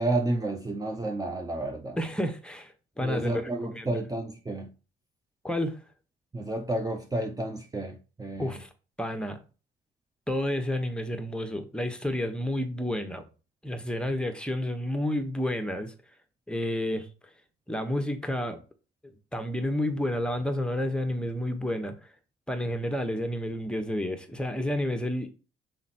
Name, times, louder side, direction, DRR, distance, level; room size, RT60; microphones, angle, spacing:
voice 1, 0.0-2.0 3.0-4.7 6.3-8.6, right 2 dB, 20° right, 0.7 m, -31 dB
voice 2, 2.0-3.9 5.4-5.8 8.4-8.7 9.0-9.4 10.3-13.2 13.6-15.9 16.5-17.1 17.7-18.6 19.3-22.1 22.5-25.3, left 1 dB, 5° left, 1.1 m, -30 dB
6.0 x 4.4 x 4.3 m
cardioid pair, 90°, 20 cm